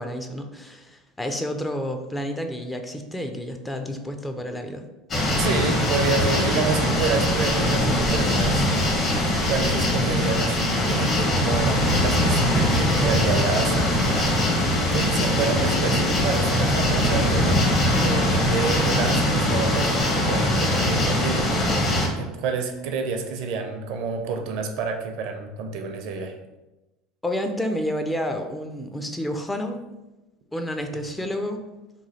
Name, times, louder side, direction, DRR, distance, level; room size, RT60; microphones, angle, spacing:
voice 1, 0.0-4.9 27.2-29.8 30.5-31.6, equal, 10° left, 5 dB, 0.4 m, -30 dB
sound 1, 5.1-22.1, left 1 dB, 40° left, 1.0 m, -22 dB
voice 2, 5.4-8.6 9.5-14.7 14.9-21.5 22.1-26.3 30.9-31.0, right 5 dB, 65° right, 4 dB, 0.5 m, -29 dB
3.0 x 2.3 x 4.0 m, 1.0 s
hypercardioid pair, 90°, 0 cm